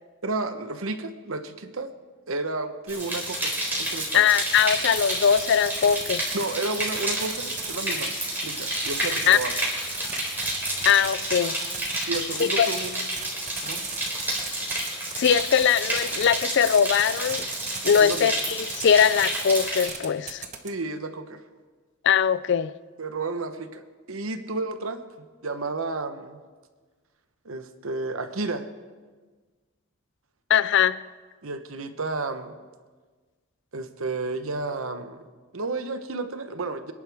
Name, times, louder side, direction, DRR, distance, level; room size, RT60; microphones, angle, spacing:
voice 1, 0.2-1.9 2.3-4.2 6.3-8.1 8.4-9.5 12.1-13.1 13.6-13.8 18.0-18.4 20.6-21.4 23.0-23.8 24.1-26.4 27.4-28.7 31.4-32.5 33.7-35.2 35.5-36.9, right 3 dB, 70° right, 1.0 m, -32 dB
sound 1, 2.9-19.9, right 1 dB, 10° right, 3.7 m, -30 dB
voice 2, 4.1-6.3 9.3-9.4 10.8-11.6 12.4-12.7 15.1-17.5 17.8-20.4 22.0-22.7 30.5-31.0, left 8 dB, 55° left, 0.4 m, -21 dB
sound 2, 4.6-6.5 6.7-8.1 8.7-9.5 9.8-12.4 12.7-20.7, right 7 dB, 35° right, 1.1 m, -36 dB
24.5 x 11.0 x 3.5 m
head